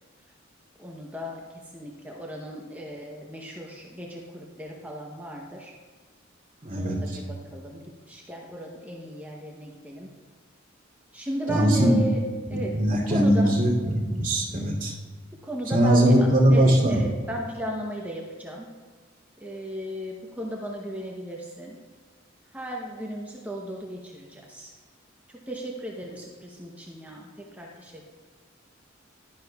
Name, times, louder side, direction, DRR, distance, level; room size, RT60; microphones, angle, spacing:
voice 1, 0.8-1.4 1.7-5.7 6.7-7.8 8.1-10.1 11.1-12.2 12.5-13.6 15.4-18.7 19.4-21.8 22.5-24.7 25.3-28.0, equal, 10° right, -1 dB, 0.8 m, -35 dB
voice 2, 6.6-7.2 11.5-12.0 12.5-14.9 15.7-17.0, right 1 dB, 40° right, -3 dB, 2.7 m, -21 dB
11.5 x 10.0 x 2.3 m, 1.4 s
head